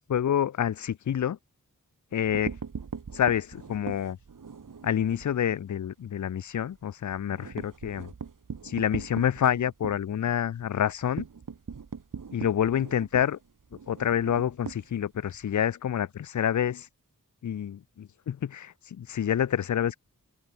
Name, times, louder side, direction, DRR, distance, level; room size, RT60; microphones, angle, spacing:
voice 1, 0.1-1.4 2.1-2.5 3.1-4.2 4.8-8.1 8.6-11.2 12.3-13.4 13.9-16.9 17.4-20.0, left 9 dB, 55° left, 0.5 m, -28 dB
sound 1, 2.1-5.3 5.7-5.9 6.2-6.3 6.6-15.5, right 5 dB, 65° right, 1.6 m, -40 dB
open air
wide cardioid pair, 80°, 35 cm